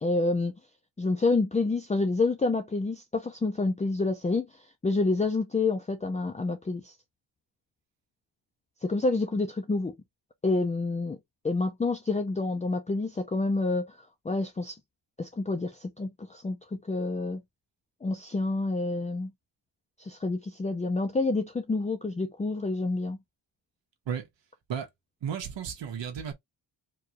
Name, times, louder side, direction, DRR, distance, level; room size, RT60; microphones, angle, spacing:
voice 1, 0.0-0.5 1.0-6.9 8.8-9.9 10.4-11.2 11.4-14.0 14.2-14.8 15.2-17.4 18.0-19.3 20.0-23.2, left 3 dB, 15° left, 0.5 m, -28 dB
voice 2, 25.2-26.3, right 8 dB, 80° right, 1.3 m, -33 dB
4.6 x 2.3 x 2.9 m
wide cardioid pair, 140°, 43 cm